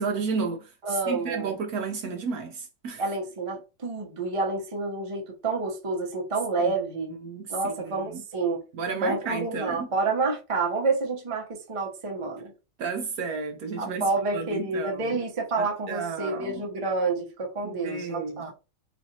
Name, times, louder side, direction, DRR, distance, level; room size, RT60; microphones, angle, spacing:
voice 1, 0.0-3.0 6.6-6.7 7.2-8.2 8.7-9.9 12.8-14.0 14.3-15.2 15.6-16.7 17.6-18.5, right 4 dB, 65° right, 1.0 m, -32 dB
voice 2, 0.8-1.5 3.0-7.2 7.5-8.6 9.0-12.5 13.8-18.5, right 3 dB, 30° right, 0.6 m, -29 dB
4.1 x 3.1 x 2.7 m
omnidirectional pair, 1.9 m